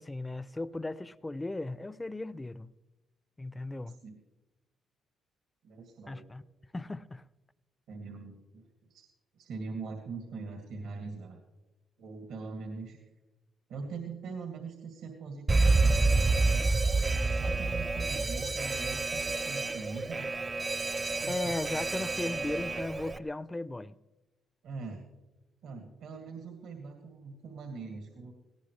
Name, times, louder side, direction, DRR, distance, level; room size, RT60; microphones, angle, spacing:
voice 1, 0.0-2.7 3.4-4.0 6.1-6.4 6.7-7.2 21.3-24.0, left 2 dB, 15° left, 0.5 m, -36 dB
voice 2, 5.6-6.3 7.9-9.0 9.3-11.4 12.0-13.0 13.7-16.4 17.2-20.3 24.6-25.0 25.6-28.3, right 4 dB, 85° right, 2.2 m, -42 dB
Alarm, 15.5-23.2, right 3 dB, 30° right, 0.7 m, -28 dB
18.5 x 18.0 x 3.3 m
cardioid pair, 90°, 0 cm